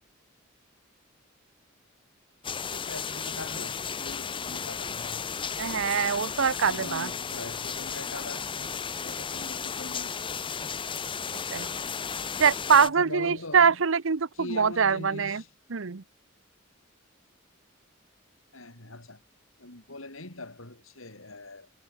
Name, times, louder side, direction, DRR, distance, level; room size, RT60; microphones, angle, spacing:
sound 1, 2.4-12.9, left 6 dB, 25° left, 0.7 m, -34 dB
voice 1, 2.7-5.6 6.6-10.5 12.9-13.8 14.3-15.5 18.5-19.2 19.6-21.7, left 2 dB, 80° left, 5.0 m, -42 dB
voice 2, 5.6-7.1 11.5-11.7 12.4-15.4 15.7-16.0, right 6 dB, 70° right, 0.8 m, -24 dB
head